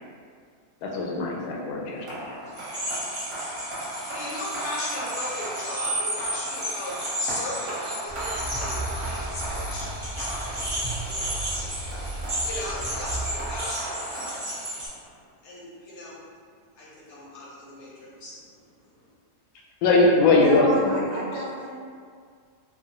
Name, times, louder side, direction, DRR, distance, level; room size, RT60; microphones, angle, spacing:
voice 1, 0.8-2.4 19.8-20.7 20.9-21.1, left 3 dB, 85° left, -2 dB, 1.2 m, -21 dB
sound 1, 2.1-15.1, right 1 dB, 55° right, 1.2 m, -37 dB
sound 2, 2.5-14.9, right 1 dB, 25° right, 0.8 m, -34 dB
voice 2, 3.8-9.9 10.2-14.4 15.4-16.2 16.8-18.6 18.9-19.1, left 1 dB, 60° left, -6 dB, 0.7 m, -37 dB
sound 3, 8.1-13.6, right 1 dB, 5° right, 0.3 m, -35 dB
voice 3, 20.4-21.7, right 1 dB, 80° right, -4 dB, 1.2 m, -31 dB
3.6 x 2.0 x 2.8 m, 2.1 s
omnidirectional pair, 1.7 m